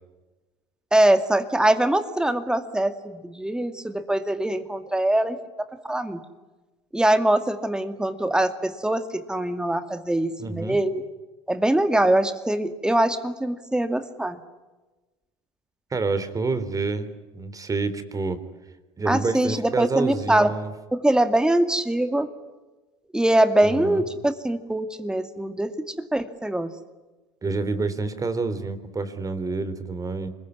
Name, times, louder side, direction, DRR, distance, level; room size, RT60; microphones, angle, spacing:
voice 1, 0.9-5.4 5.8-6.2 6.9-11.0 11.5-14.4 19.1-20.5 20.9-22.3 23.1-25.7 26.1-26.7, right 1 dB, 5° right, 9 dB, 2.3 m, -23 dB
voice 2, 10.4-10.8 15.9-18.4 19.0-20.7 23.6-24.1 27.4-30.3, right 3 dB, 25° right, 12 dB, 3.4 m, -28 dB
26.5 x 22.0 x 9.7 m, 1.2 s
hypercardioid pair, 75°, 14 cm